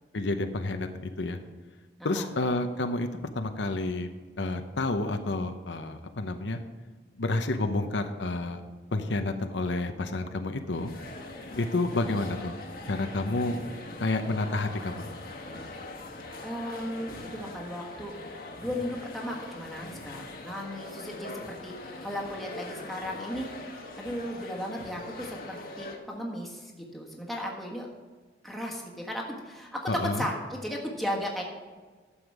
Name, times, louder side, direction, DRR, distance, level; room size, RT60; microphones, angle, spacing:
voice 1, 0.1-1.4 2.0-3.1 3.3-4.1 4.4-6.6 7.2-8.6 8.9-10.9 11.6-12.6 12.9-13.6 14.0-15.0 29.9-30.3, left 2 dB, 80° left, 7 dB, 0.8 m, -29 dB
sound 1, 10.7-26.0, left 2 dB, 50° left, 1.3 m, -42 dB
voice 2, 16.4-18.1 18.6-21.8 22.0-23.5 24.0-27.9 28.4-31.4, equal, ahead, -1 dB, 1.5 m, -35 dB
11.5 x 7.2 x 4.8 m, 1.4 s
head